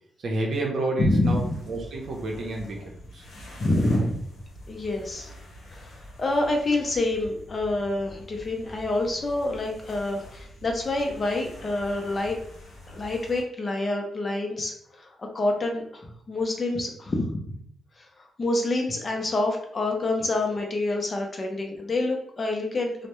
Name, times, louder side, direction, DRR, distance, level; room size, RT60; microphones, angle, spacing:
voice 1, 0.2-3.3, right 2 dB, 60° right, 0 dB, 0.6 m, -30 dB
voice 2, 1.0-1.5 3.6-4.2 4.7-5.3 5.7-12.4 12.9-17.6 18.2-23.1, left 2 dB, 35° left, 2 dB, 0.5 m, -27 dB
sound 1, 1.2-13.4, left 1 dB, 75° left, 0.8 m, -45 dB
2.2 x 2.0 x 2.9 m, 0.68 s
cardioid pair, 110°, 0 cm